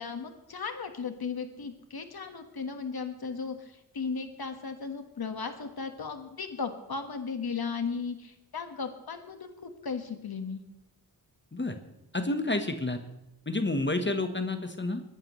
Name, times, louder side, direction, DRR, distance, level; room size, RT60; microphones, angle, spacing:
voice 1, 0.0-10.6, left 5 dB, 65° left, 7 dB, 1.5 m, -36 dB
voice 2, 12.1-13.0 13.5-15.0, left 2 dB, 25° left, 7 dB, 1.1 m, -29 dB
22.5 x 11.0 x 3.1 m, 0.92 s
wide cardioid pair, 65°, 40 cm